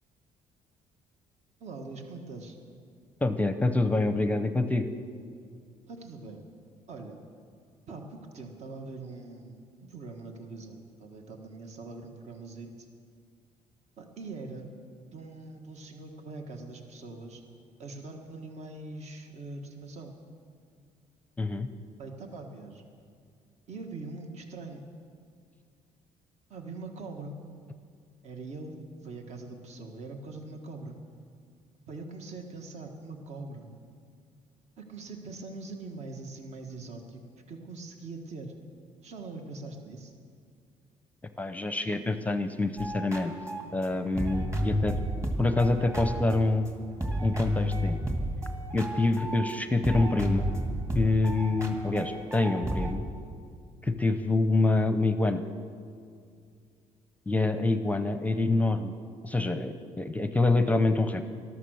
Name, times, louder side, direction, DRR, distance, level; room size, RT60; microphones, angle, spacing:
voice 1, 1.6-2.6 5.9-6.4 6.9-7.2 7.9-12.9 14.0-14.7 15.0-17.4 17.8-20.1 22.0-22.9 23.7-24.9 26.5-27.3 28.2-28.8 29.0-30.9 31.9-33.7 34.8-37.2 37.5-38.5 39.0-40.1, right 3 dB, 55° right, 4 dB, 1.6 m, -42 dB
voice 2, 3.2-4.9 21.4-21.7 41.4-43.3 43.7-44.9 45.4-46.7 47.2-48.0 48.7-50.5 50.9-53.0 53.8-55.4 57.3-59.0 59.2-61.3, left 2 dB, 10° left, 10 dB, 0.7 m, -26 dB
sound 1, 42.8-46.7 47.0-49.6 49.8-52.9, equal, 20° right, 2.1 m, -31 dB
13.5 x 12.5 x 6.4 m, 2.3 s
cardioid pair, 95°, 13 cm